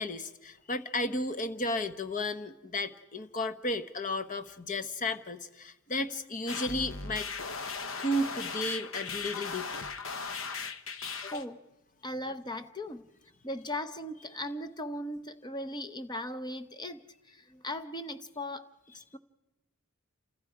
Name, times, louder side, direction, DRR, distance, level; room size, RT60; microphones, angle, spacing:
voice 1, 0.0-7.3 8.0-9.8 10.2-10.6, left 1 dB, 40° left, 10 dB, 1.1 m, -33 dB
sound 1, 6.5-11.4, left 4 dB, 75° left, 1.0 m, -38 dB
voice 2, 11.2-11.6 12.0-13.0 13.4-19.2, left 1 dB, 20° left, 11 dB, 0.8 m, -38 dB
28.0 x 27.5 x 4.9 m, 0.98 s
head